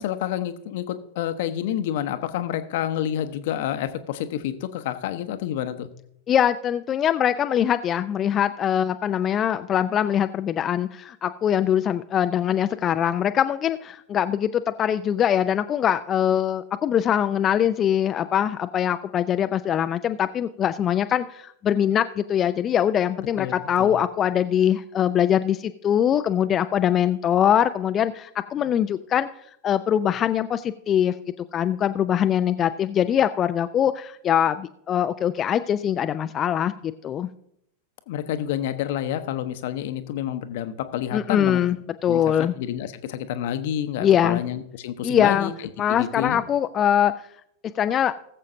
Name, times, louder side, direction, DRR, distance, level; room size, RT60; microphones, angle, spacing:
voice 1, 0.0-5.9 23.4-24.0 38.1-41.6 42.1-45.5 45.9-46.4, left 11 dB, 50° left, 11 dB, 0.8 m, -29 dB
voice 2, 6.3-29.3 29.6-31.1 31.5-37.3 41.1-41.8 42.0-42.5 44.0-44.4 45.0-45.5 45.8-47.1 47.8-48.1, left 9 dB, 25° left, 10 dB, 0.4 m, -22 dB
19.5 x 7.5 x 2.7 m, 0.73 s
figure-of-eight pair, 90°, 0 cm